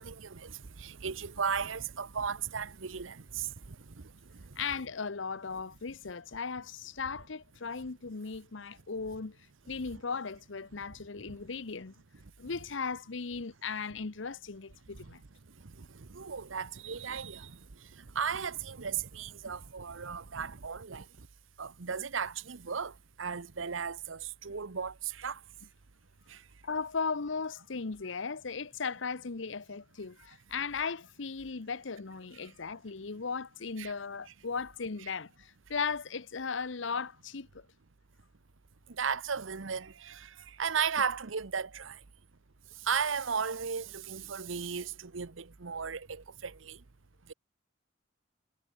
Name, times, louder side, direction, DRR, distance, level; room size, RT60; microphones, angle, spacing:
voice 1, 0.0-4.4 11.2-11.4 15.0-15.1 15.6-17.6 18.0-21.0 21.6-25.4 26.3-26.4 33.8-33.9 39.0-42.0 42.8-46.8, right 6 dB, 80° right, 0.9 m, -36 dB
voice 2, 4.6-9.4 9.7-11.9 12.4-15.2 26.6-37.7, left 5 dB, 70° left, 0.9 m, -37 dB
head